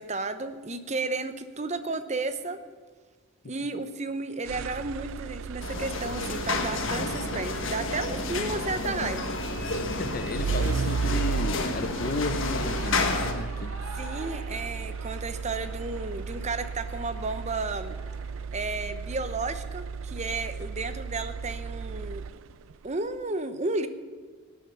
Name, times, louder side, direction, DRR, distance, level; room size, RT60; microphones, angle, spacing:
voice 1, 0.0-2.6 3.5-9.3 14.0-18.0 18.5-22.2 22.8-23.9, right 3 dB, 30° right, 11 dB, 0.8 m, -33 dB
sound 1, 4.5-22.7, right 5 dB, 65° right, 0.3 m, -35 dB
sound 2, 5.6-13.3, left 3 dB, 60° left, 1.5 m, -31 dB
voice 2, 10.0-13.7, left 3 dB, 45° left, 12 dB, 0.6 m, -33 dB
Shout / Cheering, 10.7-18.5, right 2 dB, 85° right, 2.2 m, -45 dB
17.0 x 9.4 x 6.9 m, 1.5 s
head